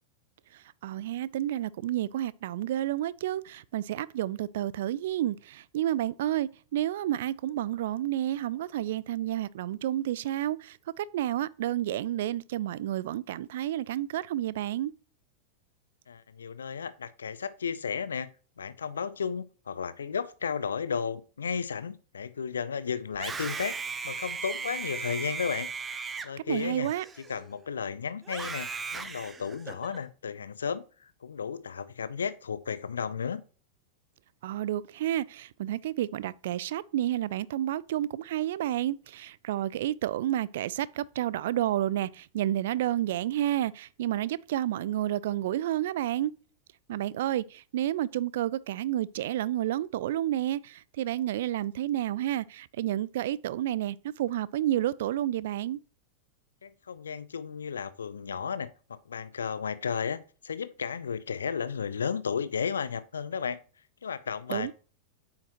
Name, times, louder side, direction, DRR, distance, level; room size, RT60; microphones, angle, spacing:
voice 1, 0.5-14.9 26.5-27.1 34.4-46.3 46.9-55.8 64.5-64.7, right 13 dB, 55° right, 0.3 m, -30 dB
voice 2, 16.1-18.3 18.6-23.7 24.0-25.7 26.2-26.9 27.3-30.8 31.2-33.4 56.6-63.6 64.0-64.7, left 6 dB, 70° left, 0.5 m, -33 dB
Screaming, 23.1-27.6 28.2-30.0, right 5 dB, 15° right, 0.7 m, -37 dB
8.6 x 5.7 x 2.9 m
figure-of-eight pair, 90°, 0 cm